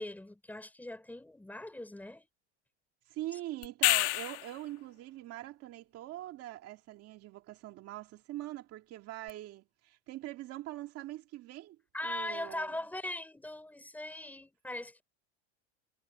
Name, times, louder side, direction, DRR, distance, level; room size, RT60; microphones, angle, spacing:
voice 1, 0.0-2.3 11.9-15.0, left 1 dB, 5° left, 3.6 m, -40 dB
voice 2, 3.1-12.7, right 15 dB, 45° right, 2.1 m, -43 dB
sound 1, 3.6-4.6 9.3-9.4, left 23 dB, 70° left, 1.6 m, -28 dB
supercardioid pair, 140°, 35 cm